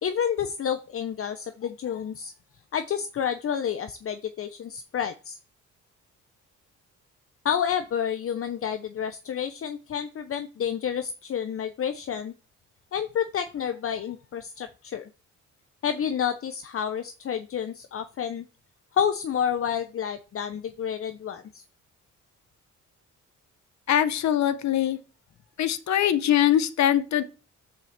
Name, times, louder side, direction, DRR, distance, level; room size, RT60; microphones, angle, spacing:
voice 1, 0.0-2.3 2.7-5.4 7.4-12.3 12.9-15.1 15.8-18.5 18.9-21.6, left 8 dB, 45° left, 9 dB, 0.8 m, -29 dB
voice 2, 23.9-25.0 25.6-27.2, left 11 dB, 65° left, 12 dB, 1.1 m, -22 dB
7.6 x 5.6 x 7.3 m, 0.34 s
cardioid pair, 90°, 30 cm